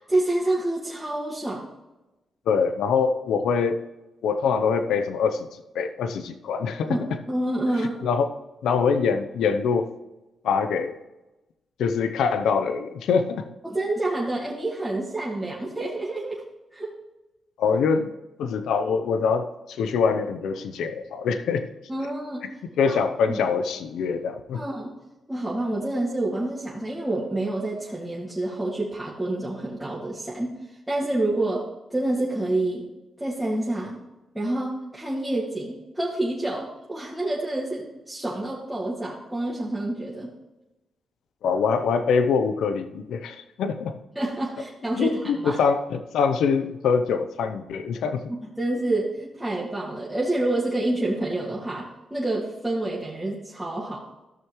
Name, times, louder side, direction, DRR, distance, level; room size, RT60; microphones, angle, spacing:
voice 1, 0.1-1.6 6.9-7.0 7.3-8.1 13.6-16.4 16.7-16.9 21.9-22.4 22.9-23.0 23.3-23.4 24.5-24.9 25.3-30.5 30.9-31.6 31.9-32.8 33.2-34.0 34.3-40.3 44.2-45.6 48.3-54.0, right 1 dB, 10° right, -6 dB, 2.2 m, -28 dB
voice 2, 2.5-3.8 4.2-5.5 5.7-6.9 7.7-8.3 8.6-9.9 10.4-11.0 11.8-13.5 17.6-18.1 18.4-21.6 22.8-24.6 41.4-43.9 45.0-48.2, left 5 dB, 85° left, 8 dB, 0.7 m, -24 dB
14.0 x 6.5 x 3.1 m, 1.0 s
cardioid pair, 75°, 0 cm